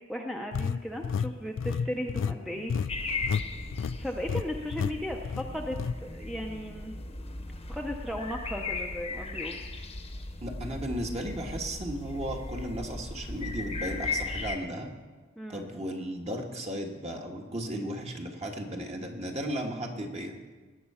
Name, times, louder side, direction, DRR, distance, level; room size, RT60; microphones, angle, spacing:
voice 1, 0.1-2.7 4.0-6.9 7.7-9.6 15.4-15.7, equal, ahead, 1 dB, 0.7 m, -36 dB
sound 1, 0.5-3.5 3.7-4.0 4.3-4.4 4.7-4.9 5.3-5.9, left 6 dB, 70° left, 0.4 m, -30 dB
sound 2, 2.9-14.6, left 3 dB, 30° left, 1.0 m, -37 dB
voice 2, 10.4-14.9 15.5-20.3, right 1 dB, 30° right, 2 dB, 1.6 m, -35 dB
19.5 x 7.7 x 5.7 m, 1.3 s
head